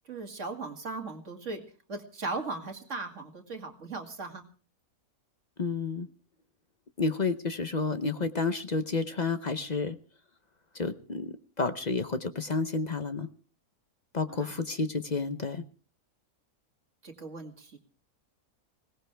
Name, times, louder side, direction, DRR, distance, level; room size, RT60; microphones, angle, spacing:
voice 1, 0.1-1.6 1.9-4.4 14.3-14.5 17.0-17.8, right 3 dB, 50° right, 3 dB, 2.6 m, -38 dB
voice 2, 5.6-6.1 7.0-10.0 10.7-13.3 14.1-15.6, left 4 dB, 35° left, 10 dB, 0.7 m, -30 dB
21.0 x 18.0 x 3.4 m, 0.38 s
omnidirectional pair, 1.6 m